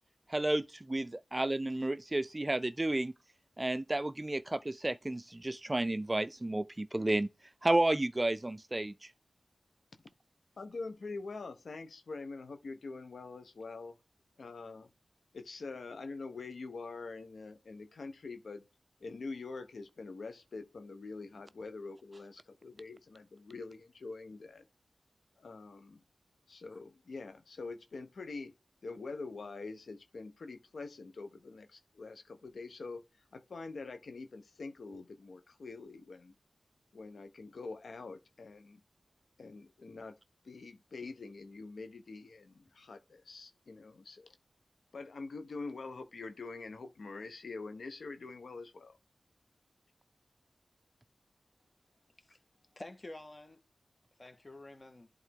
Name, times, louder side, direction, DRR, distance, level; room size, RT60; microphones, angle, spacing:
voice 1, 0.3-3.1 3.6-7.3 7.6-8.9, right 1 dB, 25° right, 0.4 m, -31 dB
voice 2, 10.6-14.0 14.4-14.9 15.3-18.6 19.0-24.7 25.4-26.0 26.5-28.5 28.8-33.0 33.3-36.3 36.9-38.8 39.4-40.1 40.4-44.4 44.9-49.0, left 3 dB, 80° left, 1.1 m, -45 dB
voice 3, 52.7-53.6 54.2-55.1, left 2 dB, 35° left, 1.6 m, -49 dB
11.0 x 3.7 x 3.6 m
wide cardioid pair, 75°, 0 cm